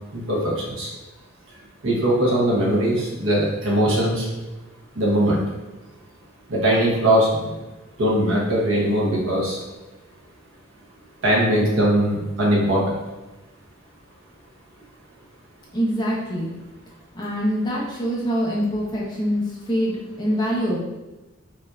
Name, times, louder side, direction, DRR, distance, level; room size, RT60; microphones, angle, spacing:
voice 1, 0.1-0.9 1.8-4.3 4.9-5.4 6.5-7.5 8.0-9.6 11.2-12.8, right 1 dB, 75° right, -4 dB, 1.1 m, -20 dB
voice 2, 15.7-16.5 17.1-20.8, equal, 20° left, -5 dB, 0.8 m, -24 dB
5.3 x 2.7 x 2.4 m, 1.1 s
head